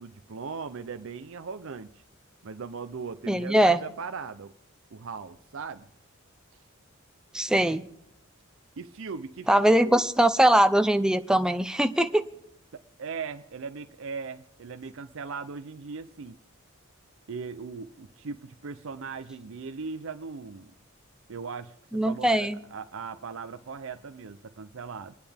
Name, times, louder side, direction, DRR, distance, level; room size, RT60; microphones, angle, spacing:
voice 1, 0.0-2.0 2.4-4.5 4.9-5.9 8.8-10.0 12.7-16.4 17.3-20.7 21.3-25.1, right 5 dB, 70° right, 9 dB, 0.6 m, -39 dB
voice 2, 3.3-3.8 7.3-7.8 9.5-12.2 21.9-22.6, right 1 dB, 5° right, 10 dB, 0.5 m, -21 dB
27.5 x 10.0 x 3.5 m, 0.83 s
head